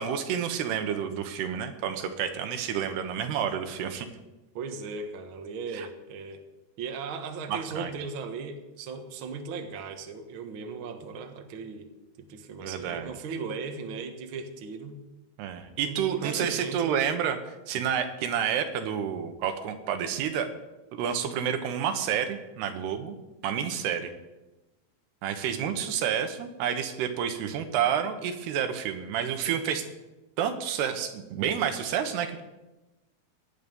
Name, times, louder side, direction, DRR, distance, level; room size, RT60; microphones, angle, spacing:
voice 1, 0.0-4.1 5.7-5.9 7.5-7.9 12.6-13.1 15.4-20.5 20.9-23.2 23.4-24.1 25.2-29.8 30.4-32.4, right 8 dB, 85° right, 7 dB, 3.3 m, -29 dB
voice 2, 4.5-6.4 6.8-11.9 12.2-15.0 15.8-17.0 25.8-25.9, right 4 dB, 60° right, 5 dB, 1.3 m, -37 dB
17.0 x 11.0 x 5.5 m, 1.0 s
omnidirectional pair, 4.6 m